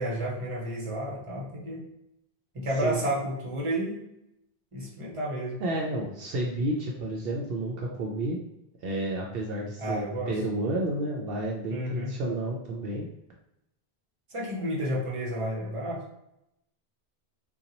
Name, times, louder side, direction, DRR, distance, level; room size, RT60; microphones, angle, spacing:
voice 1, 0.0-1.9 2.5-4.0 4.7-5.6 9.8-10.3 11.7-12.1 14.3-16.0, right 1 dB, 35° right, -3 dB, 0.9 m, -31 dB
voice 2, 5.6-8.4 8.8-13.1, right 1 dB, 70° right, -1 dB, 0.7 m, -31 dB
2.8 x 2.3 x 3.8 m, 0.84 s
omnidirectional pair, 1.1 m